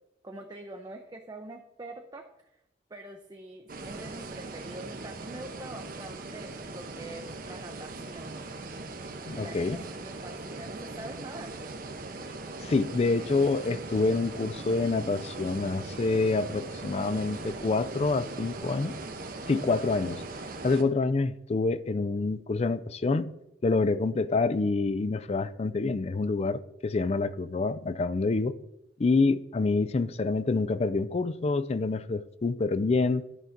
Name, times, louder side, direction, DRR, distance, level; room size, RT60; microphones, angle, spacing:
voice 1, 0.2-2.2 2.5-2.6 2.9-8.4 9.3-11.7, right 2 dB, 20° right, 0.5 m, -44 dB
sound 1, 3.7-20.8, right 2 dB, 50° right, 0.8 m, -40 dB
voice 2, 9.2-9.8 12.6-18.9 19.5-20.2 20.6-23.3 23.6-28.5 29.0-33.2, left 3 dB, 35° left, 0.4 m, -27 dB
11.0 x 3.8 x 5.8 m
head